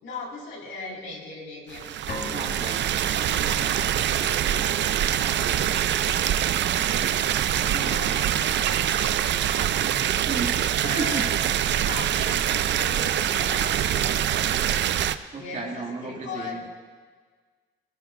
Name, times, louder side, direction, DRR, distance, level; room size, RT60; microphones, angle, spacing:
voice 1, 0.0-1.8 3.0-10.3 10.8-11.5 11.8-13.9 15.4-16.7, left 3 dB, 80° left, -3 dB, 5.0 m, -39 dB
sound 1, 1.7-15.2, right 10 dB, 65° right, 0.5 m, -24 dB
sound 2, 2.1-3.9, left 3 dB, 55° left, 2.2 m, -39 dB
voice 2, 2.3-2.9 10.3-11.3 15.3-16.6, right 4 dB, 40° right, 1 dB, 2.0 m, -33 dB
19.0 x 16.5 x 2.6 m, 1.5 s
cardioid pair, 90°, 20 cm